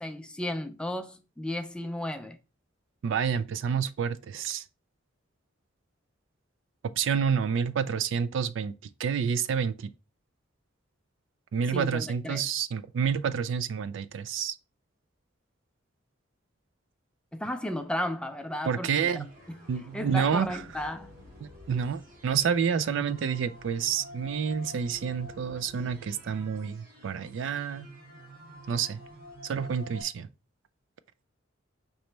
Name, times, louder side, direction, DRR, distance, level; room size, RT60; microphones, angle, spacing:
voice 1, 0.0-2.4 11.7-12.4 17.3-19.2 19.9-21.1, left 1 dB, 5° left, 0.4 m, -34 dB
voice 2, 3.0-4.6 7.0-8.7 9.0-9.9 11.5-14.6 18.6-19.3 19.7-20.6 21.4-27.9 28.7-29.0 29.4-30.3, right 7 dB, 65° right, 0.3 m, -29 dB
sound 1, 19.0-30.0, equal, 45° right, 1.8 m, -49 dB
5.4 x 3.0 x 3.2 m
head